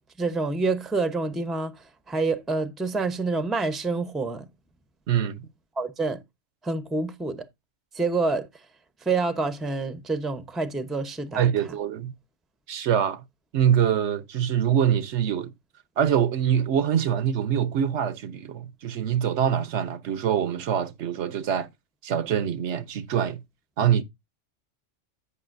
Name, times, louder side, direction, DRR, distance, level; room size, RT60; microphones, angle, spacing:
voice 1, 0.2-1.7 2.1-4.5 5.8-6.2 6.6-7.4 7.9-8.5 9.1-11.5, right 3 dB, ahead, 0.6 m, -27 dB
voice 2, 5.1-5.5 11.3-12.1 12.7-13.2 13.5-15.5 16.0-21.7 22.0-23.4 23.8-24.0, right 9 dB, 70° right, 0.9 m, -24 dB
11.0 x 8.3 x 2.6 m
omnidirectional pair, 1.2 m